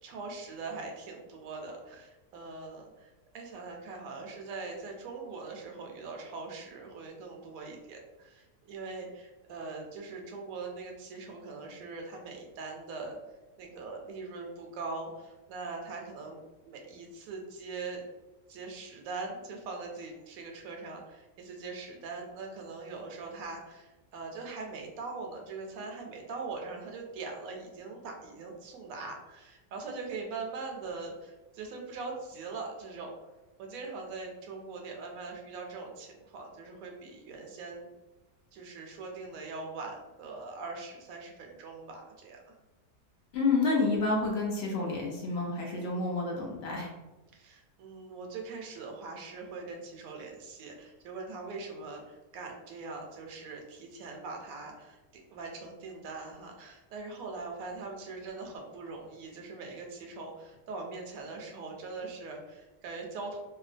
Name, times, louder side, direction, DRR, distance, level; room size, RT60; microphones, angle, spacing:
voice 1, 0.0-13.2 13.6-18.0 18.5-33.2 33.6-37.9 38.5-42.5 47.3-55.0 55.3-63.4, right 3 dB, 75° right, 1 dB, 1.0 m, -42 dB
voice 2, 43.3-46.9, left 3 dB, 65° left, -1 dB, 0.6 m, -29 dB
2.7 x 2.2 x 2.5 m, 1.1 s
omnidirectional pair, 1.5 m